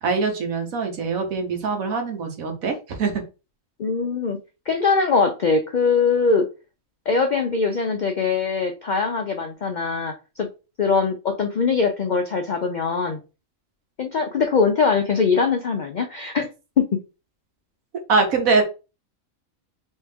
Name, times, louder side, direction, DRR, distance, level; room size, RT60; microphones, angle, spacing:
voice 1, 0.0-3.1 18.1-18.6, right 4 dB, 90° right, 4 dB, 1.5 m, -23 dB
voice 2, 3.8-4.4 4.7-6.5 7.1-10.5 10.8-13.2 14.0-16.5 16.8-17.0, left 5 dB, 75° left, 5 dB, 0.4 m, -22 dB
3.5 x 3.2 x 3.3 m, 0.30 s
omnidirectional pair, 1.4 m